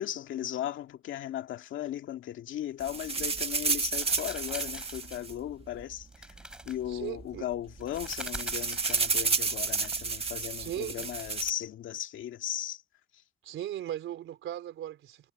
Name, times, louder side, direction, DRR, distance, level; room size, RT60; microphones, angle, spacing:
voice 1, 0.0-6.3 6.7-12.8, left 12 dB, 75° left, 2.3 m, -37 dB
sound 1, 2.8-6.0 6.8-6.9 7.2-7.4 7.7-11.5, right 4 dB, 30° right, 1.9 m, -31 dB
sound 2, 3.9-5.2 6.1-6.8 7.8-10.0 11.0-11.4, right 1 dB, 5° right, 4.7 m, -44 dB
voice 2, 6.9-7.5 10.6-11.1 13.4-15.3, right 12 dB, 80° right, 4.0 m, -38 dB
cardioid pair, 90°, 20 cm